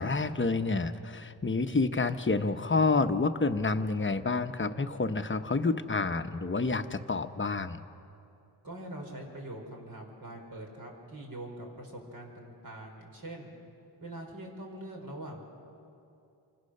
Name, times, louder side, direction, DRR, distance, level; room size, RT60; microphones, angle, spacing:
voice 1, 0.0-7.8, left 3 dB, 30° left, 8 dB, 0.9 m, -29 dB
voice 2, 8.6-13.5 14.0-15.5, right 1 dB, 55° right, 1 dB, 5.2 m, -43 dB
28.0 x 25.0 x 6.7 m, 2.7 s
wide cardioid pair, 115°, 42 cm